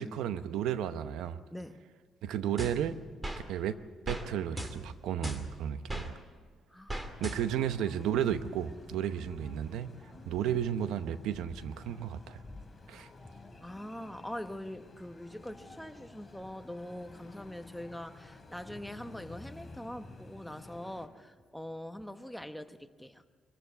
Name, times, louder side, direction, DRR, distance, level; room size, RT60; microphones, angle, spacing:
voice 1, 0.0-1.4 2.2-3.0 3.5-3.8 4.1-6.1 7.2-9.9 10.3-12.4 12.9-13.1, right 9 dB, 85° right, 0.8 m, -33 dB
voice 2, 1.5-1.8 6.7-6.9 9.1-9.2 13.2-13.3 13.6-23.2, left 1 dB, 5° left, 1.1 m, -43 dB
sound 1, 2.6-3.4 4.1-4.3 4.6-6.1 6.9-7.7, right 1 dB, 15° right, 2.4 m, -38 dB
sound 2, 7.2-21.1, left 3 dB, 20° left, 3.0 m, -51 dB
23.5 x 15.0 x 8.2 m
cardioid pair, 90°, 0 cm